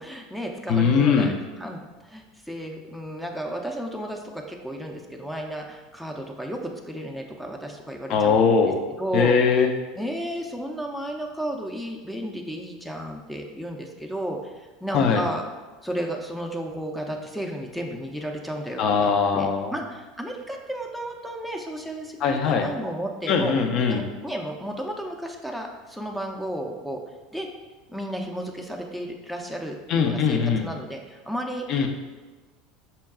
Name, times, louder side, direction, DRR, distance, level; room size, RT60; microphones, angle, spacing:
voice 1, 0.0-8.7 9.0-9.4 10.0-15.4 15.8-23.5 23.9-27.0 27.3-27.5 27.9-31.7, right 1 dB, ahead, 2 dB, 0.5 m, -33 dB
voice 2, 0.7-1.4 8.1-8.8 9.1-9.7 14.9-15.2 18.8-19.7 22.2-22.7 23.3-24.0 29.9-30.6 31.7-31.9, left 5 dB, 50° left, 5 dB, 0.5 m, -21 dB
5.5 x 2.2 x 3.6 m, 1.3 s
hypercardioid pair, 80°, 0 cm